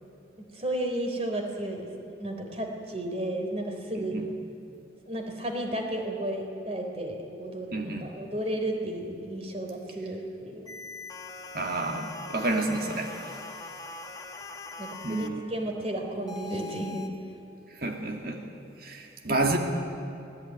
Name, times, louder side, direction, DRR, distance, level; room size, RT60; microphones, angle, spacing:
voice 1, 0.5-4.2 5.0-10.7 14.8-17.1, right 1 dB, 30° right, 3 dB, 3.5 m, -33 dB
voice 2, 4.0-4.3 7.7-8.1 11.5-13.4 15.0-15.5 17.7-18.5 18.8-19.6, right 2 dB, 50° right, 2 dB, 2.2 m, -30 dB
sound 1, 10.7-15.3 16.3-17.1, left 3 dB, 20° left, 1.6 m, -42 dB
25.0 x 18.0 x 9.5 m, 2.9 s
head